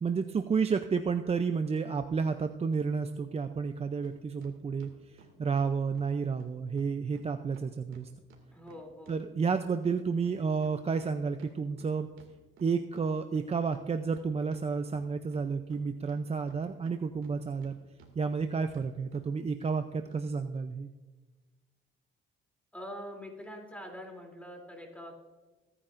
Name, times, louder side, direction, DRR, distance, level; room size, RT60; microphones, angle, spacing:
voice 1, 0.0-8.1 9.1-12.1 12.6-17.8 18.2-20.9, right 5 dB, 30° right, 8 dB, 0.6 m, -31 dB
sound 1, 4.0-4.1 4.4-6.1 6.4-6.5 6.8-6.9 7.1-7.3 7.5-10.0 10.2-13.0 13.3-13.4 13.7-14.6 14.9-15.8 16.1-17.7 18.0-18.5 18.7-18.9 19.1-19.2 19.6-19.7 20.1-20.2, right 6 dB, 80° right, 2.4 m, -57 dB
voice 2, 8.5-9.2 22.7-25.3, equal, 5° left, 1 dB, 3.1 m, -44 dB
21.5 x 10.0 x 2.6 m, 1.2 s
cardioid pair, 90°, 20 cm